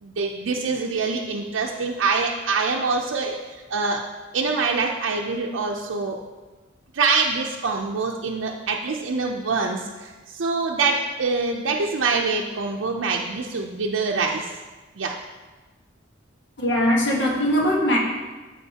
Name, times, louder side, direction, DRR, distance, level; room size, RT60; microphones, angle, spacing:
voice 1, 0.0-4.0 4.3-6.2 6.9-14.5 15.0-15.2, right 4 dB, 90° right, 0 dB, 0.5 m, -25 dB
voice 2, 16.6-18.0, equal, 65° left, -2 dB, 1.4 m, -20 dB
13.5 x 4.9 x 2.8 m, 1.3 s
head